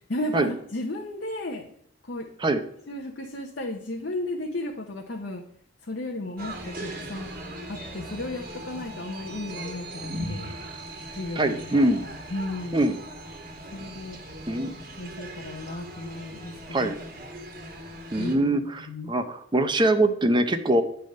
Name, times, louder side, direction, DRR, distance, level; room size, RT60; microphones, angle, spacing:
voice 1, 0.1-1.7 2.1-2.3 2.9-5.4 5.8-7.3 7.7-10.5 11.1-11.9 12.3-12.8 13.7-14.2 15.0-16.9 18.2-19.1, left 1 dB, 60° left, 2 dB, 0.8 m, -34 dB
sound 1, 6.4-18.4, right 1 dB, 45° right, 1.4 m, -39 dB
voice 2, 11.4-12.0 12.7-12.9 14.5-14.7 16.7-17.0 18.1-20.8, right 1 dB, 25° right, 9 dB, 0.6 m, -23 dB
9.2 x 3.4 x 6.4 m, 0.68 s
head